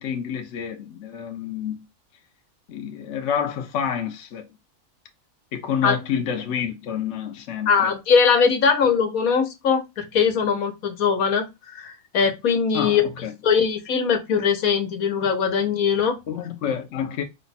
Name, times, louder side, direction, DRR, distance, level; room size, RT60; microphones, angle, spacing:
voice 1, 0.0-1.8 2.7-4.5 5.5-7.9 12.7-13.3 16.3-17.2, left 8 dB, 60° left, 1.0 m, -28 dB
voice 2, 7.7-13.1 13.4-16.2, left 6 dB, 75° left, 1.4 m, -21 dB
5.1 x 2.3 x 4.0 m
omnidirectional pair, 1.5 m